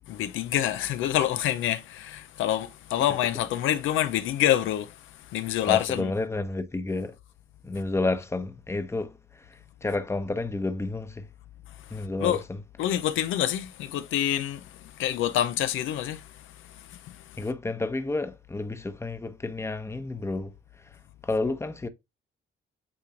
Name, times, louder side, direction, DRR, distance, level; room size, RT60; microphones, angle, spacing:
voice 1, 0.1-5.0 5.3-6.1 12.2-12.4 12.8-16.4 16.9-17.4, left 12 dB, 85° left, 0.6 m, -27 dB
voice 2, 5.6-7.2 7.6-11.3 11.9-12.6 17.4-20.5 20.8-20.9 21.2-21.9, left 2 dB, 15° left, 0.9 m, -30 dB
8.7 x 3.1 x 3.8 m
cardioid pair, 90°, 20 cm